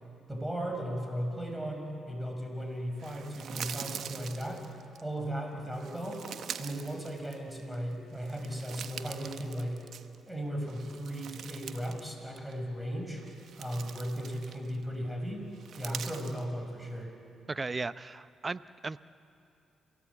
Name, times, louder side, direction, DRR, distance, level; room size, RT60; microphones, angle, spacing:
voice 1, 0.3-4.7 5.0-6.2 6.6-9.8 10.3-13.2 13.6-15.4 15.8-17.1, equal, 5° right, 2 dB, 5.8 m, -36 dB
sound 1, 3.0-5.0 5.7-7.7 8.1-10.3 10.7-12.1 12.4-12.5 13.1-14.8 15.5-16.4, right 8 dB, 70° right, 1.0 m, -44 dB
voice 2, 17.5-19.0, right 3 dB, 30° right, 15 dB, 0.7 m, -36 dB
28.0 x 16.5 x 8.4 m, 2.6 s
supercardioid pair, 65°, 0 cm